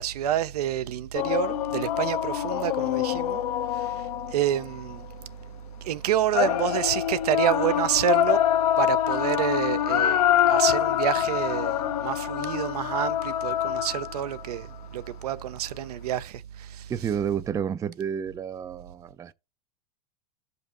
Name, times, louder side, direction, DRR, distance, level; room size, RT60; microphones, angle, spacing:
voice 1, 0.0-3.4 3.7-5.0 5.8-8.4 8.8-10.2 10.5-16.9, right 11 dB, 80° right, 0.6 m, -28 dB
sound 1, 1.1-4.9 6.3-14.4, left 11 dB, 70° left, 0.8 m, -25 dB
voice 2, 16.9-19.3, right 8 dB, 15° right, 0.4 m, -30 dB
13.5 x 5.3 x 2.5 m
hypercardioid pair, 110°, 20 cm